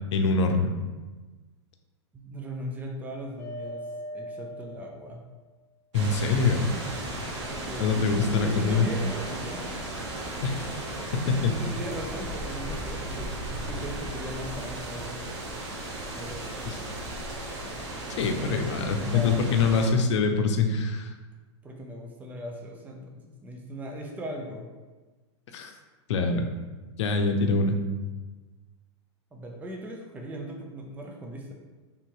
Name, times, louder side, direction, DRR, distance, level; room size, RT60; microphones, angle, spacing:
voice 1, 0.1-0.7 5.9-6.7 7.8-8.9 10.4-10.7 11.3-11.5 16.6-16.8 18.2-21.1 25.5-25.7 26.1-26.5 27.0-27.8, left 4 dB, 70° left, 5 dB, 0.7 m, -24 dB
voice 2, 2.1-3.9 4.1-5.2 7.4-9.7 11.5-15.2 16.1-16.7 18.4-19.8 21.6-24.7 29.3-31.5, equal, 10° right, 1 dB, 0.5 m, -38 dB
sound 1, 3.4-5.4 6.5-7.8 8.7-10.0, left 1 dB, 20° left, 1.0 m, -41 dB
sound 2, 5.9-19.9, right 1 dB, 70° right, 1.2 m, -36 dB
3.5 x 2.9 x 4.6 m, 1.3 s
hypercardioid pair, 130°, 15 cm